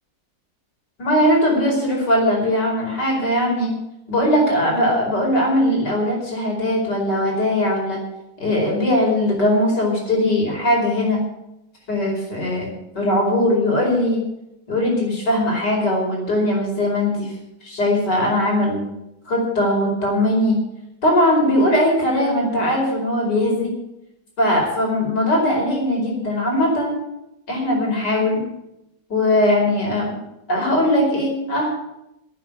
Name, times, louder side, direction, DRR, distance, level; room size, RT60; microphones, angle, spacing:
voice 1, 1.0-3.7 4.1-8.0 8.4-11.2 11.9-12.7 12.9-14.2 14.7-17.3 17.6-18.8 19.3-20.6 21.0-23.7 24.4-27.0 27.5-28.4 29.1-30.1 30.5-31.8, left 1 dB, 60° left, -1 dB, 5.6 m, -20 dB
12.0 x 9.1 x 9.9 m, 0.86 s
omnidirectional pair, 2.0 m